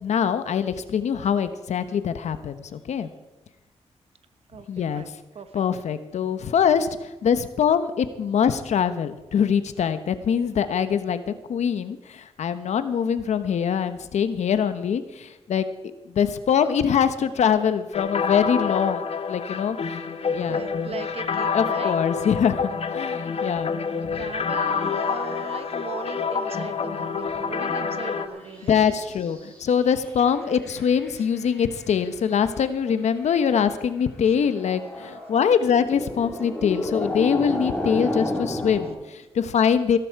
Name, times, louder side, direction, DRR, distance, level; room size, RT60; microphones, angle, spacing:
voice 1, 0.0-3.1 4.7-5.0 5.5-15.7 16.1-19.8 20.3-20.6 21.5-23.7 24.0-24.2 28.6-40.0, left 7 dB, 80° left, 11 dB, 1.0 m, -23 dB
voice 2, 4.5-5.6 20.4-21.9 24.1-28.8 29.4-29.6 31.2-31.3, right 5 dB, 60° right, 10 dB, 1.2 m, -39 dB
sound 1, 17.9-28.3, left 5 dB, 60° left, 1.2 m, -27 dB
sound 2, 24.6-28.6 28.9-31.9 33.3-33.4 34.4-38.9, left 1 dB, 10° left, 4.2 m, -33 dB
16.5 x 13.0 x 4.7 m, 1.1 s
cardioid pair, 90°, 12 cm